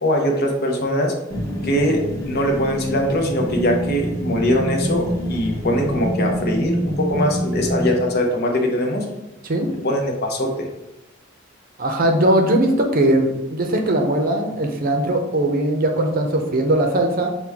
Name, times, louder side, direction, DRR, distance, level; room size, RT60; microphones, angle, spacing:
voice 1, 0.0-1.1 1.6-9.0 9.8-10.7, equal, 50° left, 1 dB, 0.8 m, -21 dB
sound 1, 1.3-8.1, equal, 15° left, 1.2 m, -26 dB
voice 2, 11.8-17.3, right 1 dB, 45° right, 4 dB, 0.6 m, -19 dB
5.9 x 2.2 x 3.4 m, 0.96 s
head